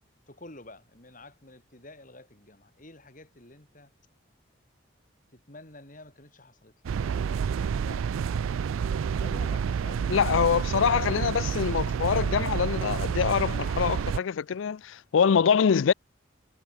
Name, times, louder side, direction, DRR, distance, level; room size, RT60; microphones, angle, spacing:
voice 1, 0.3-3.9 5.3-6.7 7.0-8.6 9.1-11.3, left 2 dB, 40° left, 4.9 m, -49 dB
sound 1, 6.8-14.2, right 7 dB, 90° right, 0.4 m, -29 dB
voice 2, 10.1-15.9, left 7 dB, 75° left, 0.4 m, -24 dB
head